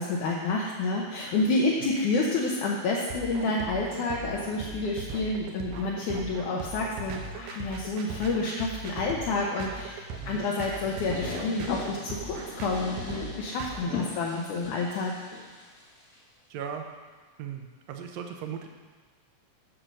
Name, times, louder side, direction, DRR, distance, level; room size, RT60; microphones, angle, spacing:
voice 1, 0.0-15.2, left 3 dB, 70° left, -3 dB, 2.3 m, -29 dB
sound 1, 3.1-13.8, right 4 dB, 85° right, 2.6 m, -39 dB
sound 2, 10.0-16.2, left 4 dB, 40° left, 1.1 m, -39 dB
voice 2, 16.5-16.8 17.4-18.7, right 8 dB, 70° right, 4 dB, 1.7 m, -37 dB
9.0 x 6.7 x 6.2 m, 1.4 s
omnidirectional pair, 3.8 m